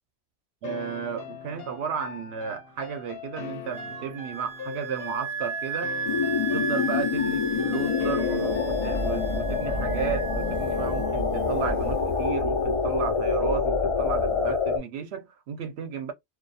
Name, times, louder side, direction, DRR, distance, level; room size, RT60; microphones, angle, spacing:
sound 1, 0.6-9.5, left 6 dB, 65° left, 0.8 m, -41 dB
voice 1, 0.6-6.0 6.3-16.1, right 7 dB, 75° right, 0.8 m, -33 dB
Wind instrument woodwind instrument, 3.7-11.1, right 6 dB, 35° right, 0.6 m, -35 dB
sound 2, 6.1-14.8, left 5 dB, 45° left, 0.4 m, -26 dB
2.3 x 2.2 x 2.6 m
omnidirectional pair, 1.1 m